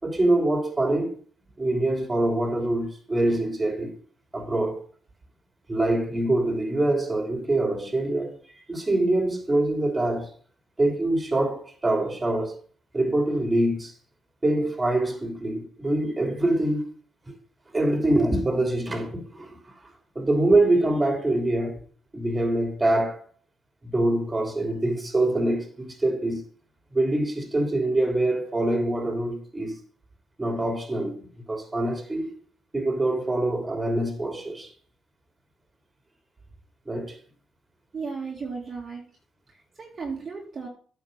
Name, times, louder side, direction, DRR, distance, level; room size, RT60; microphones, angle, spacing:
voice 1, 0.0-1.2 1.6-3.9 4.3-4.8 5.7-8.4 8.7-10.3 10.8-12.6 12.9-13.9 14.4-16.8 17.3-17.4 17.7-19.6 20.1-21.8 22.1-23.3 23.8-26.4 26.9-29.7 30.4-31.2 31.5-32.3 32.7-34.7 36.9-37.2, right 1 dB, 20° right, 3.0 m, -24 dB
voice 2, 37.9-39.1 39.5-40.7, right 5 dB, 40° right, 2.3 m, -35 dB
9.1 x 5.8 x 6.5 m
supercardioid pair, 65°, 0 cm